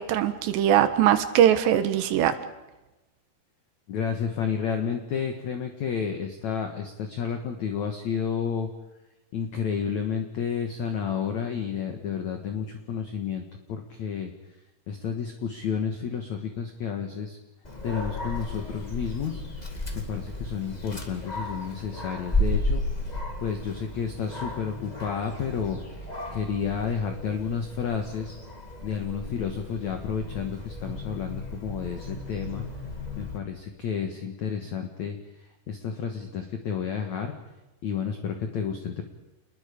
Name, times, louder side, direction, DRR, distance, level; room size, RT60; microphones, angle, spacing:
voice 1, 0.0-2.3, right 10 dB, 80° right, 10 dB, 3.3 m, -21 dB
voice 2, 3.9-8.7 9.3-13.4 13.7-14.3 14.9-17.4 17.8-19.7 19.9-22.8 23.4-28.4 28.8-32.7 33.2-37.4 37.8-39.0, left 7 dB, 55° left, 5 dB, 2.2 m, -31 dB
Dog, 17.6-33.4, left 2 dB, 25° left, 1.0 m, -34 dB
29.5 x 21.0 x 5.2 m, 1.0 s
omnidirectional pair, 5.1 m